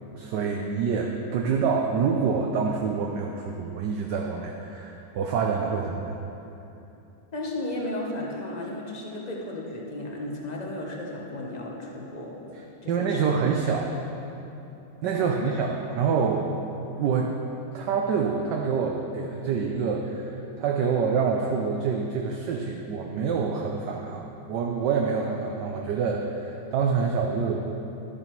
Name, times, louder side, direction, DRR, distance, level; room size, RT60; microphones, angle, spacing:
voice 1, 0.1-6.2 12.9-13.9 15.0-16.5 16.8-17.3 17.7-27.6, right 5 dB, 70° right, 1 dB, 1.1 m, -26 dB
voice 2, 7.3-12.5 12.8-13.3 15.2-16.0, left 1 dB, 40° left, -2 dB, 0.6 m, -34 dB
12.0 x 6.8 x 4.5 m, 2.9 s
omnidirectional pair, 2.2 m